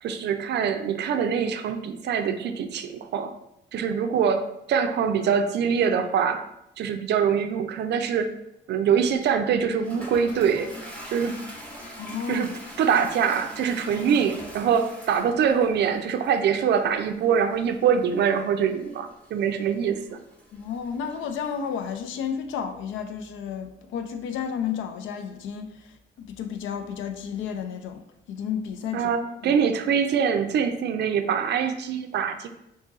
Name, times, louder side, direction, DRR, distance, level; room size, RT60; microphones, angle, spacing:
voice 1, 0.0-3.3 3.7-6.4 6.8-8.3 8.7-10.7 11.1-11.4 12.3-12.5 12.8-20.2 28.9-32.5, right 7 dB, 60° right, 8 dB, 0.4 m, -24 dB
Toilet flush, 9.2-22.0, equal, 5° left, 0.9 m, -44 dB
voice 2, 12.0-12.6 20.5-29.1, left 7 dB, 75° left, 7 dB, 0.4 m, -32 dB
2.7 x 2.3 x 3.9 m, 0.83 s
cardioid pair, 90°, 20 cm